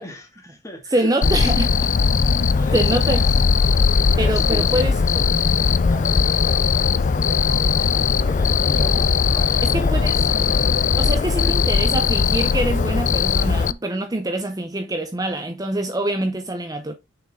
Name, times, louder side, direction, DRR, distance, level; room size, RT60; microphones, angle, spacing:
voice 1, 0.0-1.6 2.5-3.4 4.2-5.3 5.8-10.6 11.3-11.9, equal, 15° left, 2.3 m, -38 dB
voice 2, 0.9-1.7 2.7-3.2 4.2-5.0 9.6-10.2 11.0-16.9, right 1 dB, 20° right, 0.6 m, -24 dB
Cricket, 1.2-13.7, left 5 dB, 40° left, 0.4 m, -19 dB
6.4 x 5.8 x 3.6 m
head